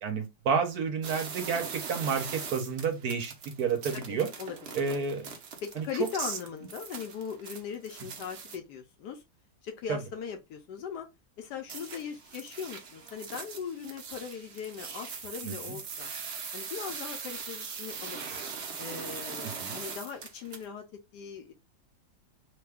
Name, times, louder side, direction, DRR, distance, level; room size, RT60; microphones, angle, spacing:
voice 1, 0.0-4.3 4.7-5.3 5.8-5.9 6.2-6.3 9.9-10.0 15.4-15.8 19.6-19.8, right 6 dB, 65° right, 1.0 m, -30 dB
sound 1, 1.0-8.6 11.7-20.6, right 5 dB, 80° right, 0.5 m, -41 dB
voice 2, 3.9-5.0 5.6-9.2 9.6-11.1 11.4-16.1 16.5-18.2 18.8-20.8 21.1-21.5, left 7 dB, 70° left, 1.0 m, -39 dB
3.2 x 2.2 x 3.3 m
omnidirectional pair, 2.1 m